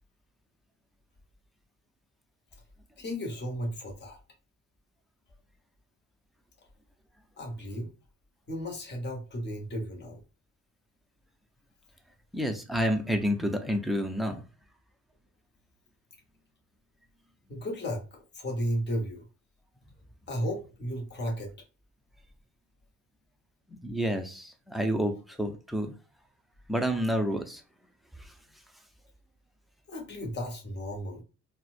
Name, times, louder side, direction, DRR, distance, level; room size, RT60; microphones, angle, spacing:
voice 1, 3.0-4.2 7.4-7.9 8.5-10.2 17.5-19.2 20.3-21.5 29.9-31.2, equal, 35° left, -1 dB, 1.1 m, -34 dB
voice 2, 12.3-14.4 23.7-25.9 26.7-27.6 28.2-28.3, equal, ahead, 6 dB, 0.5 m, -29 dB
4.2 x 2.1 x 2.5 m, 0.34 s
cardioid pair, 90°, 30 cm